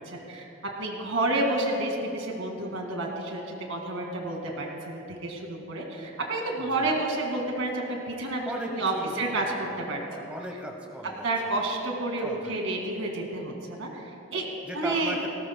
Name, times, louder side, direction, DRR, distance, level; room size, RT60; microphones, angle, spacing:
voice 1, 0.1-0.5 0.8-10.3 11.2-14.5 14.7-15.2, right 2 dB, 80° right, 1 dB, 2.1 m, -30 dB
voice 2, 6.6-7.0 8.4-9.6 10.0-11.3 11.6-11.7 12.2-12.8 14.6-15.3, equal, 5° right, 1 dB, 1.0 m, -37 dB
18.5 x 18.0 x 2.2 m, 2.8 s
head